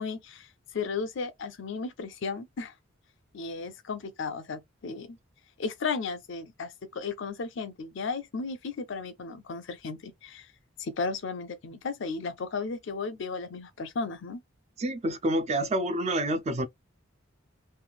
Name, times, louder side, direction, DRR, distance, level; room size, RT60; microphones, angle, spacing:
voice 1, 0.0-2.7 3.3-5.2 5.6-10.5 10.8-14.4, left 4 dB, 65° left, 0.5 m, -35 dB
voice 2, 14.8-16.7, right 1 dB, 30° right, 0.4 m, -28 dB
3.1 x 2.3 x 2.3 m
head